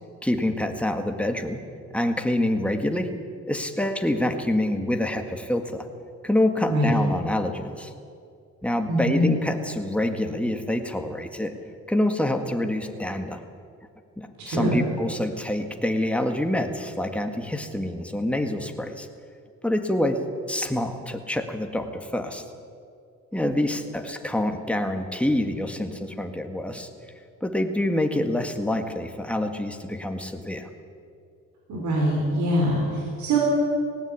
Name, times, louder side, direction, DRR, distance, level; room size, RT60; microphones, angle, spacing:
voice 1, 0.2-1.6 1.9-3.1 3.5-5.9 6.2-7.9 8.6-11.5 11.9-13.4 14.2-19.1 19.6-22.4 23.3-26.9 27.4-30.7, left 1 dB, 5° left, 5 dB, 2.0 m, -26 dB
voice 2, 8.9-9.3 14.4-14.8 31.7-33.4, right 1 dB, 70° right, -2 dB, 4.7 m, -23 dB
18.5 x 16.5 x 8.6 m, 2.4 s
cardioid pair, 90°, 30 cm